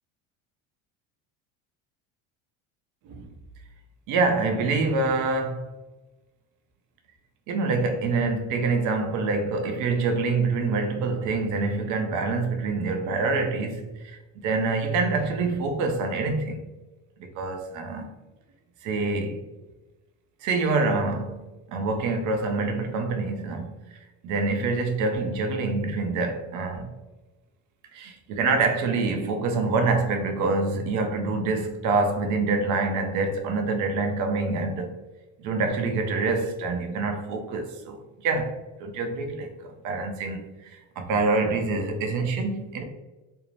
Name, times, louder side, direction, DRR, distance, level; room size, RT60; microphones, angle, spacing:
voice 1, 4.1-5.6 7.5-13.9 14.4-16.6 17.2-18.1 18.8-19.4 20.4-21.4 21.7-23.7 24.2-26.9 27.9-34.9 35.4-40.5 41.0-42.8, right 3 dB, 55° right, 0.5 m, -26 dB
2.6 x 2.0 x 3.0 m
supercardioid pair, 115°, 38 cm